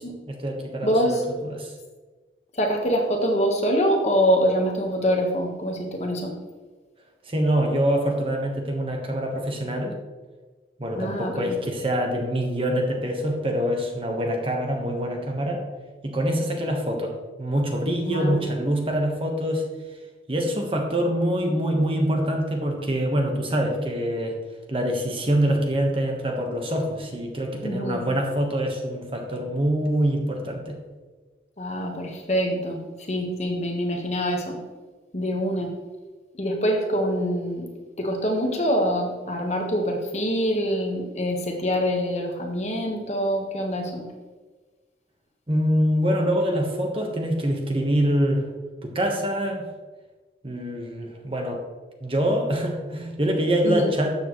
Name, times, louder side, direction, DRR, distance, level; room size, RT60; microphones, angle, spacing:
voice 1, 0.3-1.2 1.4-1.7 7.3-10.0 10.8-15.6 16.0-19.6 20.3-24.4 24.7-30.8 45.5-48.4 48.8-49.7 50.4-51.6 52.0-54.2, equal, 30° right, 2 dB, 1.3 m, -25 dB
voice 2, 0.8-1.2 2.5-6.3 11.0-11.6 18.1-18.4 27.6-28.0 31.6-32.8 33.1-34.6 35.1-35.7 36.4-37.7 38.0-44.0 53.6-53.9, equal, 40° left, 1 dB, 1.4 m, -25 dB
12.5 x 7.2 x 3.2 m, 1.3 s
head